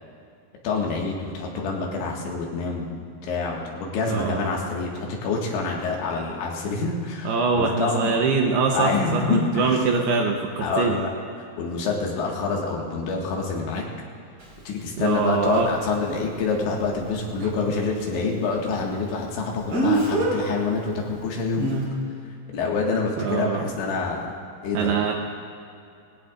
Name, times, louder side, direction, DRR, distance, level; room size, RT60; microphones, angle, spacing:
voice 1, 0.6-8.1 8.7-10.0 10.6-11.1 11.6-13.8 14.7-21.7 22.5-24.3 24.6-24.9, left 4 dB, 80° left, -1 dB, 4.1 m, -27 dB
voice 2, 4.1-4.5 7.2-11.0 15.0-15.7 17.4-17.5 23.2-23.6 24.7-25.1, right 5 dB, 75° right, 1 dB, 2.5 m, -23 dB
Speech, 14.4-14.5 19.7-20.3 21.6-21.8, right 2 dB, 30° right, 4.5 m, -22 dB
20.0 x 17.5 x 2.5 m, 2.5 s
omnidirectional pair, 5.3 m